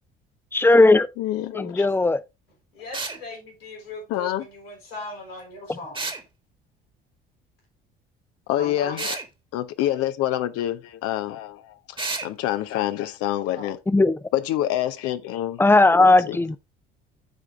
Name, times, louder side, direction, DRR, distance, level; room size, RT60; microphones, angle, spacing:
voice 1, 0.5-1.1 1.5-2.2 5.7-5.8 13.9-14.1 15.6-16.6, left 2 dB, 10° left, 0.7 m, -17 dB
voice 2, 1.2-1.9 4.1-4.5 8.5-9.2 9.5-12.0 12.2-13.8 14.3-15.6 16.3-16.4, left 13 dB, 55° left, 0.8 m, -26 dB
voice 3, 2.7-6.1 8.5-9.0 13.5-13.7, left 2 dB, 85° left, 4.7 m, -39 dB
sound 1, 2.9-3.2 5.9-6.2 9.0-9.3 12.0-12.3, right 3 dB, 15° right, 1.6 m, -30 dB
13.0 x 4.9 x 3.4 m
figure-of-eight pair, 55°, 29 cm